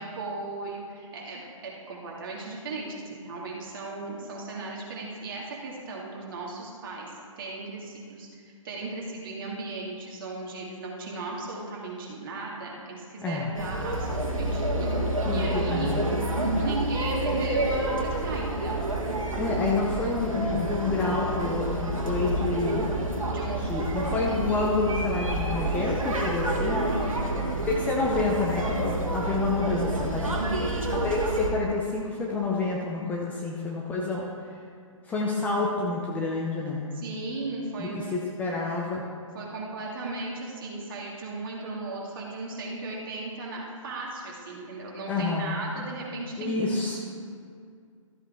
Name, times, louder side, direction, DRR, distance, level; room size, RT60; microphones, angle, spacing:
voice 1, 0.0-16.0 16.6-18.8 23.3-24.4 26.9-27.4 30.2-30.7 36.9-38.2 39.3-47.0, right 3 dB, 40° right, -3 dB, 2.2 m, -36 dB
sound 1, 13.5-31.5, right 1 dB, 80° right, 1.8 m, -28 dB
voice 2, 15.2-16.0 19.4-22.9 23.7-26.9 27.7-30.6 30.9-34.6 35.0-36.9 37.8-39.0 45.1-45.6 46.4-47.0, left 3 dB, 10° left, -3 dB, 0.7 m, -29 dB
13.0 x 8.0 x 3.6 m, 2.3 s
figure-of-eight pair, 135°, 17 cm